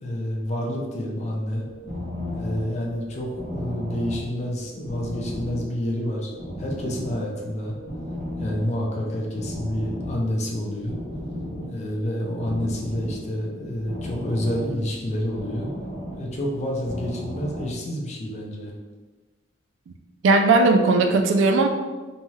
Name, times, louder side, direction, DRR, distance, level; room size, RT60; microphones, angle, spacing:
voice 1, 0.0-1.6 2.3-6.3 6.6-7.7 8.4-11.0 11.7-15.7 16.2-18.7, left 1 dB, 35° left, -2 dB, 0.5 m, -28 dB
sound 1, 1.6-17.7, equal, 80° left, 1.0 m, -36 dB
voice 2, 20.2-21.7, right 3 dB, 75° right, 5 dB, 0.3 m, -17 dB
2.7 x 2.3 x 3.0 m, 1.3 s
head